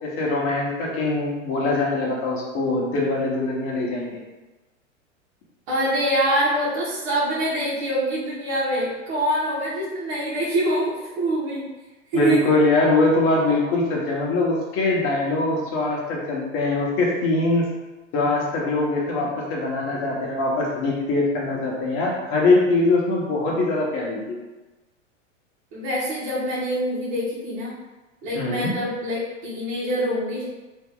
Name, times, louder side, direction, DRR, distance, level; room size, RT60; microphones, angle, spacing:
voice 1, 0.0-4.2 12.1-17.7 18.1-24.4 28.3-28.7, left 2 dB, 35° left, -3 dB, 1.1 m, -22 dB
voice 2, 5.7-10.9 11.2-11.6 12.1-12.4 25.7-27.7 28.2-30.4, right 1 dB, 45° right, -9 dB, 1.4 m, -25 dB
3.1 x 2.8 x 3.7 m, 1.1 s
hypercardioid pair, 125°, 39 cm